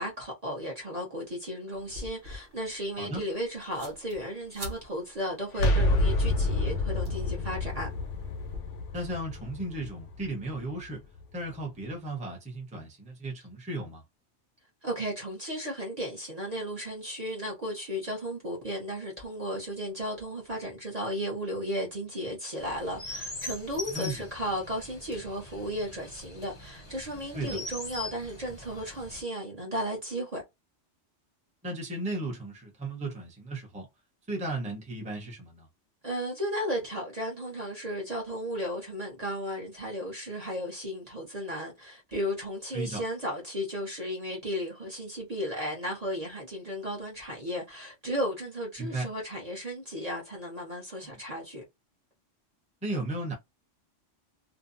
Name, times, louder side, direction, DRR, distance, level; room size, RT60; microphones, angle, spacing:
voice 1, 0.0-7.9 14.8-30.4 36.0-51.6, equal, 40° right, 0.8 m, -34 dB
sound 1, 1.7-8.6, equal, 70° right, 1.2 m, -48 dB
sound 2, 5.5-11.3, left 2 dB, 80° left, 0.9 m, -29 dB
voice 2, 8.9-11.0 11.3-14.0 23.9-24.3 27.3-27.6 31.6-33.9 34.3-35.7 42.7-43.0 48.8-49.1 51.0-51.2 52.8-53.3, right 2 dB, 5° right, 0.7 m, -35 dB
Chirp tweet, 22.6-29.2, left 2 dB, 30° left, 0.6 m, -42 dB
2.7 x 2.2 x 2.5 m
omnidirectional pair, 1.2 m